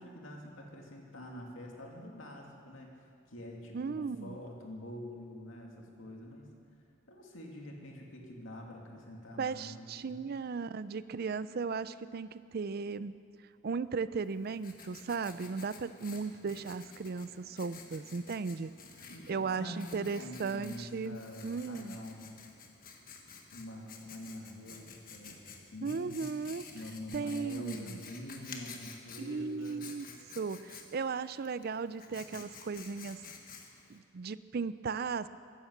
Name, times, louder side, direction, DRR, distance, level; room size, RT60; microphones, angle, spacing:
voice 1, 0.0-2.9 3.3-6.5 7.1-10.3 19.1-22.5 23.5-26.3 26.7-30.0, left 1 dB, 65° left, 0 dB, 2.5 m, -46 dB
voice 2, 3.7-4.4 9.4-13.2 13.6-18.7 19.3-22.0 25.8-26.6 27.1-28.0 29.2-30.1 30.4-33.2 33.9-35.3, right 5 dB, 50° right, 15 dB, 0.4 m, -36 dB
Writing, 14.2-34.0, left 5 dB, 45° left, 1.4 m, -52 dB
14.0 x 11.5 x 7.9 m, 2.3 s
head